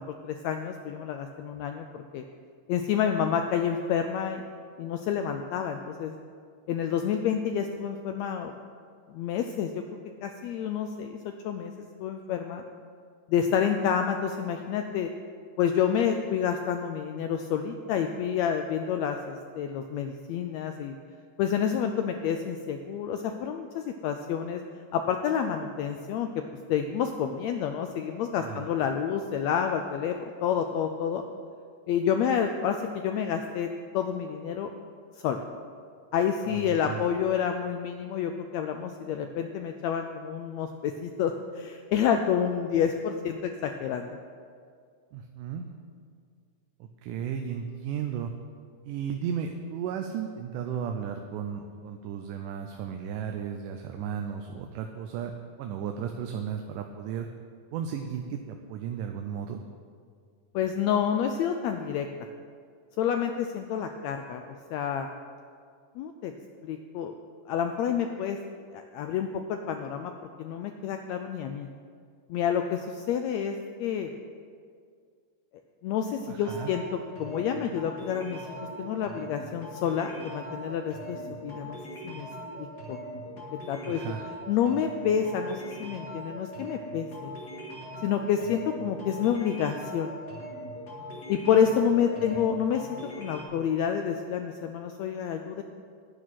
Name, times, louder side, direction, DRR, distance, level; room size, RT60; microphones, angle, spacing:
voice 1, 0.0-2.2 2.7-4.4 4.8-6.1 6.7-8.5 9.1-9.8 10.2-12.6 13.3-15.1 15.6-20.9 21.4-24.6 24.9-26.4 26.7-31.2 31.9-33.7 33.9-34.7 35.2-35.4 36.1-44.1 60.5-62.1 63.0-65.1 66.0-66.3 66.6-67.1 67.5-68.4 68.7-70.1 70.4-71.7 72.3-74.1 75.8-76.8 77.2-78.4 78.8-81.8 82.0-82.3 82.6-83.0 83.5-84.0 84.5-87.3 88.0-90.2 91.3-92.9 93.2-95.6, left 8 dB, 85° left, 6 dB, 1.5 m, -29 dB
voice 2, 36.5-37.0 45.1-45.6 47.0-48.3 48.8-55.3 55.6-57.3 57.7-59.6 76.3-76.7 83.8-84.2, right 8 dB, 90° right, 4 dB, 2.3 m, -34 dB
sound 1, 76.4-93.4, equal, 30° left, 2.7 m, -41 dB
10.5 x 6.3 x 9.1 m, 2.1 s
omnidirectional pair, 3.7 m